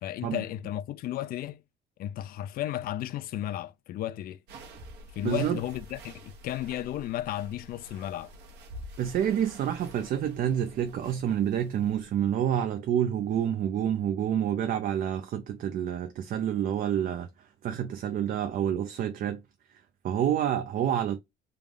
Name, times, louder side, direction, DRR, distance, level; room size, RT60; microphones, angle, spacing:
voice 1, 0.0-1.6 2.0-4.4 5.1-8.3, left 13 dB, 60° left, 0.4 m, -34 dB
sound 1, 4.5-12.1, right 1 dB, 80° right, 1.1 m, -48 dB
voice 2, 5.2-5.6 9.0-17.3 17.6-19.4 20.0-21.2, right 9 dB, 55° right, 0.5 m, -28 dB
3.4 x 2.4 x 3.6 m
cardioid pair, 110°, 17 cm